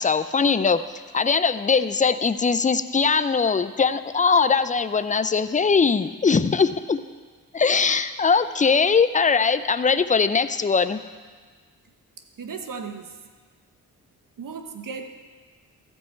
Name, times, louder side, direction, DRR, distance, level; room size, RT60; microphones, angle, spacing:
voice 1, 0.0-7.0 7.5-11.0, left 5 dB, 20° left, 13 dB, 0.5 m, -21 dB
voice 2, 12.4-13.2 14.4-15.1, right 5 dB, 60° right, 7 dB, 1.1 m, -35 dB
15.0 x 5.4 x 4.5 m, 1.5 s
cardioid pair, 50°, 36 cm